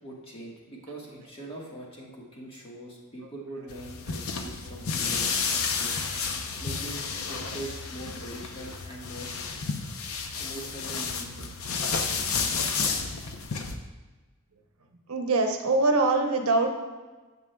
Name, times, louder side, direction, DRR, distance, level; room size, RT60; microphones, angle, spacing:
voice 1, 0.0-6.1 6.6-9.3 10.4-11.5, right 1 dB, 25° left, -3 dB, 1.5 m, -42 dB
sound 1, 3.7-13.8, left 5 dB, 70° left, 0.7 m, -31 dB
voice 2, 15.1-16.7, right 3 dB, 75° right, 4 dB, 0.8 m, -23 dB
9.4 x 7.5 x 2.3 m, 1.3 s
head